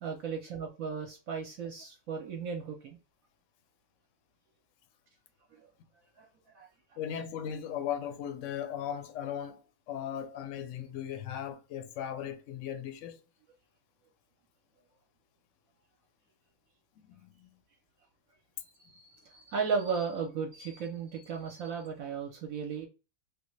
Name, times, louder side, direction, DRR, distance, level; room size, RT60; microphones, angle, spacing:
voice 1, 0.0-3.0 5.5-5.7 6.2-6.3 6.5-7.0 18.8-22.9, right 5 dB, 65° right, 0.9 m, -36 dB
voice 2, 7.0-9.6 9.9-13.2 17.1-17.5, left 9 dB, 65° left, 0.8 m, -37 dB
3.3 x 2.1 x 3.1 m
omnidirectional pair, 1.7 m